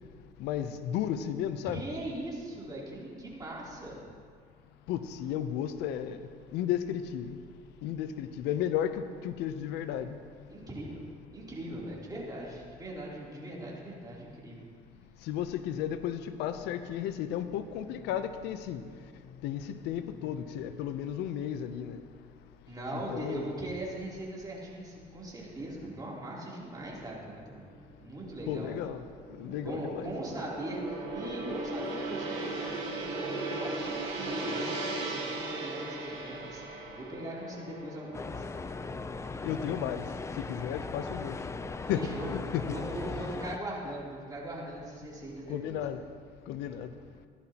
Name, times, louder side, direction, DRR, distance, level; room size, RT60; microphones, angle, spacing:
voice 1, 0.4-1.8 4.9-7.4 7.8-10.2 15.2-18.8 19.4-22.0 22.9-23.5 28.5-29.0 29.4-30.1 39.4-40.0 40.4-41.4 41.9-42.6 45.5-46.0 46.5-46.9, left 10 dB, 90° left, 11 dB, 0.6 m, -34 dB
voice 2, 1.6-4.0 10.5-11.0 11.3-14.7 22.7-27.7 28.0-28.8 29.6-36.6 37.0-38.4 41.9-42.3 42.7-45.8, right 1 dB, 20° right, -5 dB, 3.1 m, -40 dB
Gong, 27.6-40.1 40.4-40.7, right 2 dB, 80° right, 3.0 m, -38 dB
sound 1, 38.1-43.6, left 4 dB, 15° left, 0.4 m, -38 dB
15.5 x 12.0 x 2.9 m, 2.1 s
cardioid pair, 110°, 17 cm